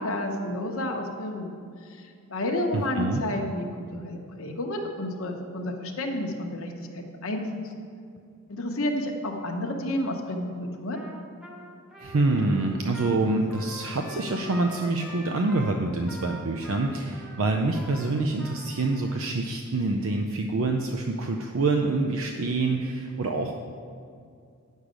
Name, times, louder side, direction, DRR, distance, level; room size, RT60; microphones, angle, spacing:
voice 1, 0.0-1.6 2.3-7.5 8.5-11.0, left 1 dB, 65° left, 2 dB, 0.9 m, -30 dB
voice 2, 2.7-3.2 12.0-23.5, right 2 dB, 65° right, 3 dB, 0.5 m, -26 dB
Trumpet, 10.9-19.2, right 1 dB, 5° right, 0.9 m, -44 dB
8.6 x 6.4 x 5.1 m, 2.3 s
head